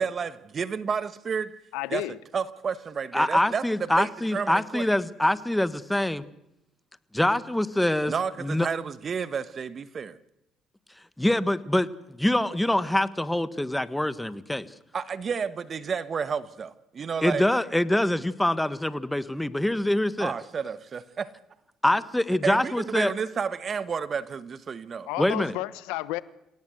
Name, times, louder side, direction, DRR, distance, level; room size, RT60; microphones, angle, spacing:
voice 1, 0.0-1.6 1.9-2.1 2.3-4.8 8.1-10.2 14.9-17.5 20.2-21.3 22.4-25.1, right 6 dB, 45° right, 1.4 m, -31 dB
voice 2, 1.7-2.2 25.0-26.2, left 18 dB, 90° left, 1.0 m, -31 dB
voice 3, 3.1-6.2 7.1-8.1 8.4-8.7 11.2-14.7 17.2-20.3 21.8-23.1 25.2-25.5, left 1 dB, 5° left, 1.5 m, -25 dB
28.0 x 17.5 x 8.0 m
supercardioid pair, 70°, 0 cm